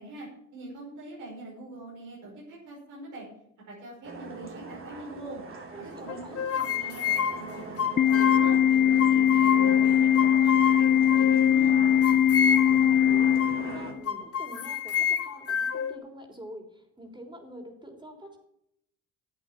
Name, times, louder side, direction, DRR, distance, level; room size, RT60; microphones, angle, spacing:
voice 1, 0.0-3.3 3.7-8.6 8.9-12.0, right 2 dB, 85° right, -4 dB, 5.3 m, -43 dB
sound 1, 4.0-13.9, right 2 dB, 45° right, 2.5 m, -41 dB
voice 2, 5.7-6.4 12.3-18.4, equal, 15° right, 3 dB, 3.6 m, -46 dB
sound 2, 6.1-8.6 9.0-9.9 10.2-11.5 12.0-12.9 13.4-13.6 14.1-15.9, left 7 dB, 50° left, 1.3 m, -29 dB
Organ, 8.0-14.0, left 10 dB, 35° left, 0.4 m, -21 dB
11.5 x 8.2 x 5.9 m, 0.74 s
cardioid pair, 90°, 30 cm